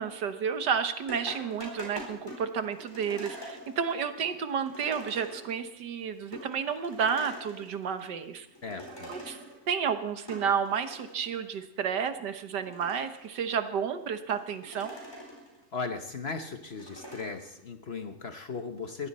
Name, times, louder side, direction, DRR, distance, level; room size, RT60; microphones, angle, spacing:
voice 1, 0.0-8.5 9.1-9.4 9.7-15.0, right 7 dB, 80° right, 9 dB, 1.7 m, -31 dB
sound 1, 1.1-5.7 6.0-6.1 6.3-8.1 8.4-9.7 10.1-11.4 11.9-12.0 12.5-13.7 14.3-15.6 16.0-17.5, equal, 15° left, 4.4 m, -44 dB
voice 2, 8.6-9.1 15.7-19.1, left 4 dB, 45° left, 7 dB, 1.1 m, -37 dB
21.0 x 15.5 x 4.2 m, 0.81 s
omnidirectional pair, 1.8 m